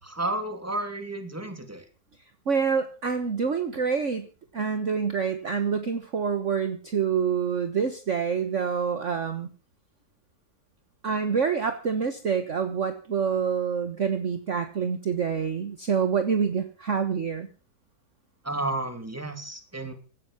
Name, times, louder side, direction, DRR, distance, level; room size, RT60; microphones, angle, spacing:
voice 1, 0.0-1.9 18.4-19.9, right 2 dB, 10° right, 6 dB, 3.1 m, -32 dB
voice 2, 2.5-4.3 4.5-9.5 11.0-17.5, right 6 dB, 45° right, 9 dB, 1.6 m, -27 dB
16.5 x 13.5 x 5.7 m, 0.37 s
omnidirectional pair, 1.8 m